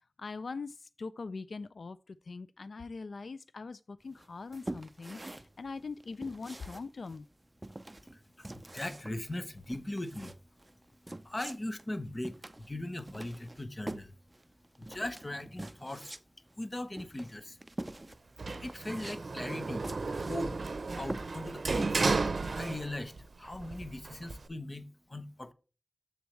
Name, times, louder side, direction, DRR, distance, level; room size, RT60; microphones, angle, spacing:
voice 1, 0.2-7.3, left 4 dB, 85° left, 0.3 m, -42 dB
sound 1, 4.2-21.7, right 1 dB, 25° right, 0.5 m, -46 dB
voice 2, 8.0-10.4 11.2-14.1 14.8-16.1 16.6-17.6 18.6-19.9 20.3-20.6 21.0-22.0 22.6-25.5, left 1 dB, 30° left, 0.9 m, -39 dB
Sliding door, 18.4-23.2 23.5-24.5, right 3 dB, 75° right, 0.6 m, -33 dB
7.2 x 6.9 x 3.1 m
wide cardioid pair, 85°, 0 cm